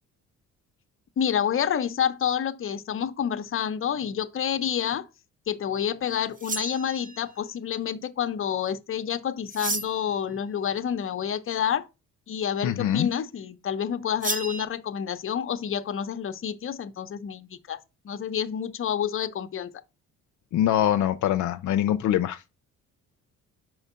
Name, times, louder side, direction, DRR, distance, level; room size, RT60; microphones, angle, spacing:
voice 1, 1.2-5.1 5.5-11.9 12.3-17.8 18.0-19.7, left 8 dB, 45° left, 0.8 m, -28 dB
sound 1, 6.4-7.3 9.5-10.2 14.2-14.6, right 3 dB, 25° right, 1.1 m, -32 dB
voice 2, 12.6-13.1 20.5-22.4, left 11 dB, 75° left, 0.6 m, -23 dB
4.8 x 4.5 x 5.5 m
cardioid pair, 90°, 30 cm